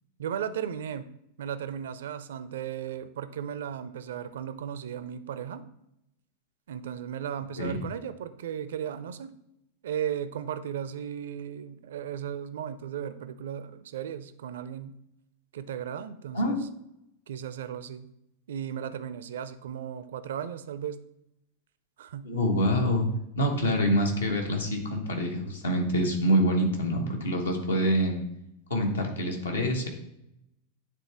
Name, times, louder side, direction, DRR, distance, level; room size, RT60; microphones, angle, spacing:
voice 1, 0.2-1.1 1.4-5.6 6.7-9.3 9.8-14.9 15.5-16.6 17.3-18.1 18.5-21.0 22.0-22.3, right 9 dB, 60° right, 13 dB, 0.4 m, -36 dB
voice 2, 22.2-23.1 23.3-28.2 28.7-29.9, equal, 70° left, 2 dB, 1.2 m, -26 dB
9.2 x 3.7 x 3.3 m, 0.81 s
figure-of-eight pair, 90°, 0 cm